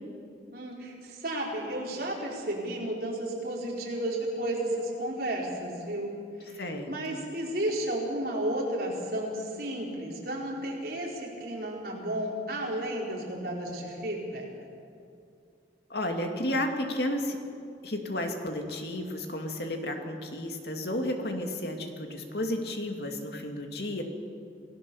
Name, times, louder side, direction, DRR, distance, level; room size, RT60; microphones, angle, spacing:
voice 1, 0.5-6.1 6.4-6.6 6.9-14.5, right 1 dB, 55° right, -2 dB, 4.9 m, -33 dB
voice 2, 6.6-7.2 15.9-17.4 17.8-24.0, left 1 dB, 60° left, 4 dB, 2.5 m, -32 dB
27.5 x 17.5 x 7.2 m, 2.4 s
head